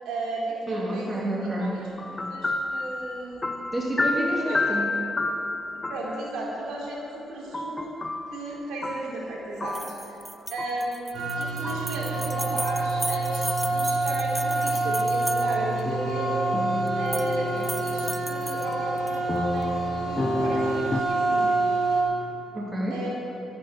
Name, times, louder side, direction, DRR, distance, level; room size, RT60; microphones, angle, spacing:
voice 1, 0.0-1.1 1.4-3.5 4.5-4.6 5.7-7.9 8.3-10.2 10.5-16.5 16.9-19.7 20.0-21.6 22.9-23.1, right 1 dB, 85° right, -4 dB, 4.2 m, -34 dB
voice 2, 0.7-1.8 3.7-4.9 11.7-11.8 17.6-17.7 22.5-23.0, right 1 dB, 20° right, -3 dB, 3.1 m, -29 dB
sound 1, 1.6-6.3 7.5-9.2 9.6-10.2 10.6-10.9 11.6-12.1 15.9-19.0 19.3-21.0, left 2 dB, 25° left, 0.9 m, -31 dB
sound 2, 9.7-15.8 16.9-17.4 17.6-19.2, right 1 dB, 5° right, 0.6 m, -36 dB
sound 3, 11.1-22.0, right 2 dB, 65° right, 3.8 m, -27 dB
13.5 x 11.0 x 8.0 m, 3.0 s
cardioid pair, 90°, 0 cm